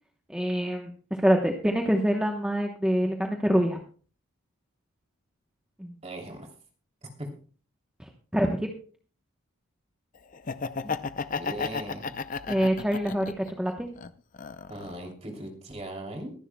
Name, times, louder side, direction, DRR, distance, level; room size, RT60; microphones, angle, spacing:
voice 1, 0.3-0.9 1.2-3.8 5.8-5.9 8.3-8.7 10.8-11.0 12.5-13.9, equal, 5° right, 2 dB, 0.9 m, -25 dB
voice 2, 6.0-6.5 7.0-7.3 11.4-12.2 14.7-16.3, right 1 dB, 30° right, 1 dB, 2.9 m, -39 dB
Laughter, 10.3-13.5 14.0-15.1, left 5 dB, 35° left, 0.5 m, -33 dB
23.0 x 11.0 x 2.2 m, 0.41 s
head